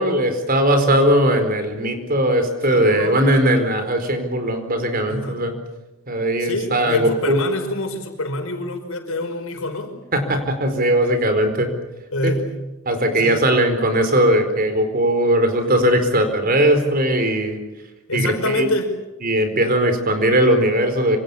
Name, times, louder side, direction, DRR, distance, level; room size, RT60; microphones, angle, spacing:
voice 1, 0.0-5.5 6.1-7.4 10.1-11.7 12.2-12.4 12.8-17.6 18.1-18.7 19.2-21.2, right 1 dB, 40° right, 7 dB, 4.6 m, -19 dB
voice 2, 2.7-3.2 5.1-5.4 6.4-9.9 12.1-12.5 13.2-13.5 18.1-18.9, left 1 dB, 75° left, 5 dB, 5.2 m, -26 dB
26.5 x 26.0 x 7.3 m, 1.0 s
head